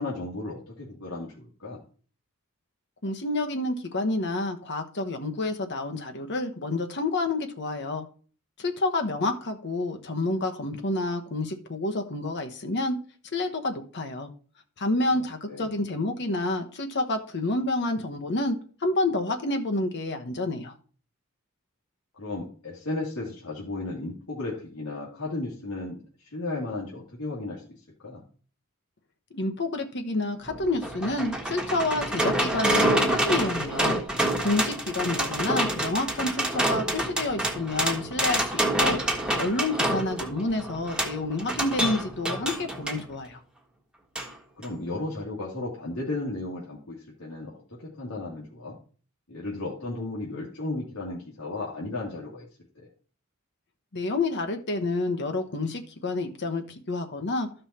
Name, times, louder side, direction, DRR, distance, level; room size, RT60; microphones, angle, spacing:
voice 1, 0.0-1.8 15.1-15.7 22.1-27.6 28.0-28.2 35.1-35.5 44.5-48.8 49.3-52.5 52.8-52.9, left 2 dB, 85° left, -5 dB, 2.5 m, -35 dB
voice 2, 3.0-8.1 8.6-13.0 13.3-14.3 14.8-18.6 18.8-20.7 29.3-34.0 34.4-39.0 39.4-43.4 53.9-57.5, left 2 dB, 55° left, 5 dB, 1.1 m, -29 dB
sound 1, 30.5-43.0 44.2-44.3 44.6-44.7, right 1 dB, 5° right, 1.5 m, -27 dB
13.5 x 5.6 x 4.3 m, 0.41 s
head